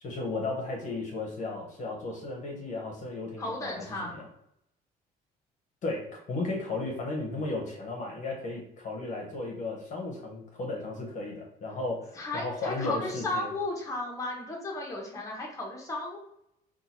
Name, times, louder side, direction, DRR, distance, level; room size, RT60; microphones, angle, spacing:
voice 1, 0.0-4.2 5.8-13.5, left 2 dB, 45° left, 0 dB, 0.8 m, -35 dB
voice 2, 3.4-4.2 12.1-16.2, left 2 dB, 20° left, -2 dB, 0.9 m, -34 dB
2.7 x 2.3 x 4.2 m, 0.77 s
cardioid pair, 110°, 17 cm